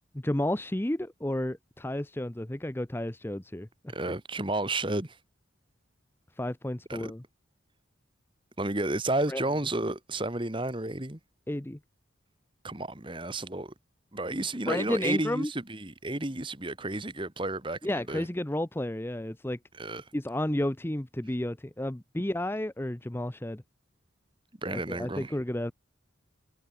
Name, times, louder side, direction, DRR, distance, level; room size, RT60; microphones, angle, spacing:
voice 1, 0.2-3.9 6.4-7.2 9.3-9.4 11.5-11.8 14.7-15.5 17.8-19.6 20.1-23.6 24.7-25.7, left 1 dB, 10° left, 0.6 m, -32 dB
voice 2, 3.9-5.2 6.9-7.1 8.6-11.2 12.6-13.7 14.1-18.3 19.7-20.0 24.6-25.3, right 2 dB, 25° right, 1.7 m, -32 dB
head